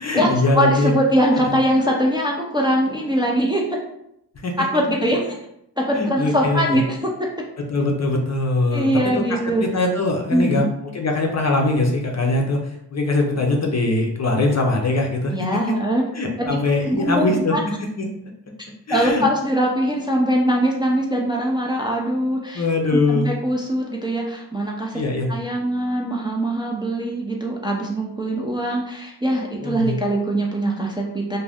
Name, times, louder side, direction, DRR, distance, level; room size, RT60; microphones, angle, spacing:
voice 1, 0.0-0.9 1.5-1.6 4.4-4.6 5.9-6.8 7.7-15.6 16.1-17.6 18.0-18.1 18.9-19.2 22.5-23.3 24.9-25.3 29.6-29.9, left 2 dB, 40° left, 1 dB, 0.6 m, -22 dB
voice 2, 0.5-3.6 4.6-5.2 5.8-7.1 8.7-9.7 10.3-10.7 15.3-16.0 16.4-17.6 18.9-22.6 22.9-25.0 25.3-31.4, right 1 dB, 10° right, -2 dB, 0.5 m, -22 dB
2.5 x 2.2 x 3.4 m, 0.77 s
cardioid pair, 60°, 44 cm